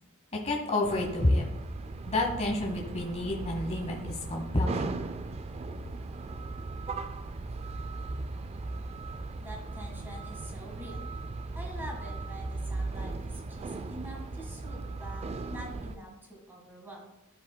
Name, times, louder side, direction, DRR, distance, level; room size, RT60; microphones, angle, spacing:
voice 1, 0.3-1.4 2.1-4.9, left 2 dB, 30° left, 0 dB, 1.0 m, -29 dB
sound 1, 0.8-16.0, right 3 dB, 30° right, 0.3 m, -38 dB
voice 2, 9.4-11.1 11.5-17.0, right 1 dB, 10° right, -1 dB, 1.6 m, -45 dB
12.5 x 5.1 x 2.2 m, 0.95 s
head